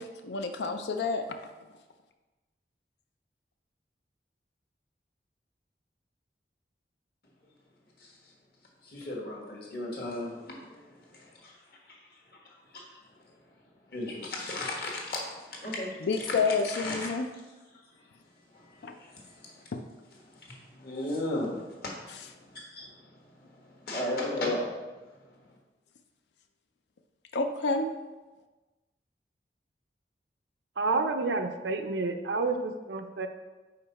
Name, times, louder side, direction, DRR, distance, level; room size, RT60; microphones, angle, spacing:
voice 1, 0.0-1.4 16.0-17.3 18.8-19.0 19.7-19.8 27.3-27.9, left 4 dB, 75° left, 6 dB, 0.4 m, -29 dB
voice 2, 8.8-11.6 11.9-12.0 12.7-12.8 13.9-15.9 16.2-16.4 16.7-17.1 18.5-19.6 20.2-25.0, left 1 dB, 55° left, -3 dB, 1.4 m, -36 dB
voice 3, 30.8-33.3, right 3 dB, 85° right, 6 dB, 0.5 m, -29 dB
5.1 x 4.5 x 4.1 m, 1.2 s
head